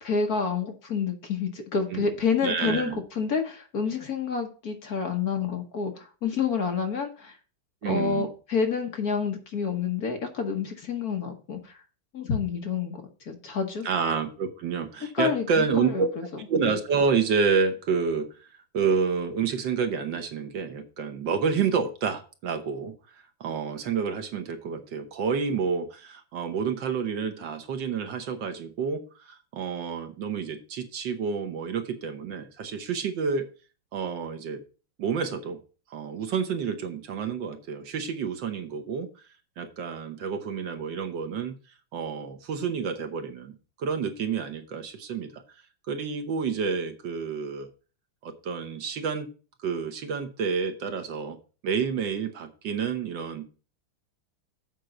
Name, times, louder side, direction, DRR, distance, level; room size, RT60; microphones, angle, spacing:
voice 1, 0.0-7.4 7.8-11.8 12.1-13.9 15.1-16.2, left 5 dB, 50° left, 4 dB, 1.4 m, -28 dB
voice 2, 2.4-3.0 7.8-8.3 13.8-16.1 16.5-18.5 18.7-33.4 33.9-34.6 35.0-35.6 35.9-39.1 39.6-41.5 41.9-45.4 45.9-47.7 48.2-49.3 49.6-51.4 51.6-53.4, right 6 dB, 65° right, 7 dB, 1.5 m, -29 dB
7.8 x 5.3 x 5.8 m, 0.36 s
omnidirectional pair, 2.3 m